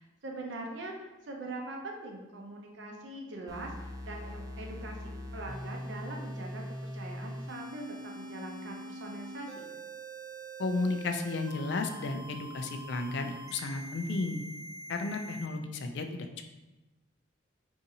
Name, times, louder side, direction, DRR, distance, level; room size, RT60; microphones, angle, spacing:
voice 1, 0.0-6.6 6.9-9.7, right 2 dB, 65° right, 1 dB, 0.7 m, -42 dB
sound 1, 3.5-15.5, right 1 dB, 20° right, 0.3 m, -43 dB
voice 2, 10.6-14.4 14.9-16.4, left 3 dB, 60° left, 6 dB, 0.4 m, -33 dB
4.7 x 2.6 x 2.7 m, 1.1 s
head